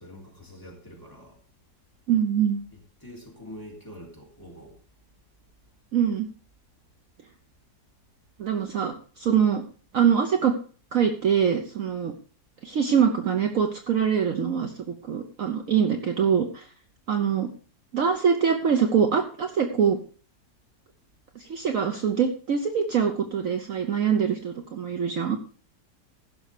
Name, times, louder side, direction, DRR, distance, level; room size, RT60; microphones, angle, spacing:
voice 1, 0.0-1.4 2.7-4.8, equal, 10° left, 3.4 m, -45 dB
voice 2, 2.1-2.6 5.9-6.3 8.4-9.6 9.9-10.6 10.9-12.1 12.6-16.7 17.1-17.5 17.9-20.0 21.4-25.4, right 7 dB, 55° right, 1.2 m, -24 dB
15.5 x 6.3 x 4.9 m
omnidirectional pair, 1.8 m